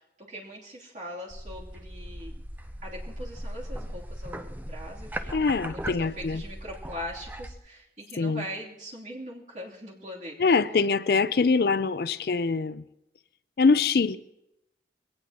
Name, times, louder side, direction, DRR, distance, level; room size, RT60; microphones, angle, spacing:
voice 1, 0.0-2.3 2.8-10.6, equal, 45° right, 3.0 m, -41 dB
sound 1, 1.3-7.5, right 1 dB, 10° right, 0.6 m, -38 dB
voice 2, 5.3-6.4 8.2-8.4 10.4-12.8 13.6-14.2, left 4 dB, 60° left, 0.4 m, -24 dB
22.0 x 17.5 x 2.9 m
head